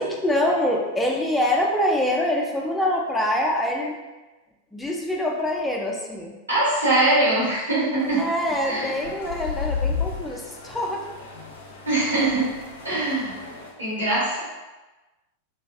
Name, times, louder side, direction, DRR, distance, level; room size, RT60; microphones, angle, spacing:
voice 1, 0.0-4.0 4.7-6.3 8.2-11.1, left 1 dB, 5° left, -1 dB, 0.4 m, -25 dB
voice 2, 6.5-8.2 8.6-9.0 11.9-12.5 12.8-13.3 13.8-14.4, right 2 dB, 80° right, -8 dB, 1.2 m, -22 dB
sound 1, 8.0-13.7, left 5 dB, 65° left, 0.4 m, -33 dB
2.6 x 2.2 x 2.3 m, 1.1 s
figure-of-eight pair, 90°, 0 cm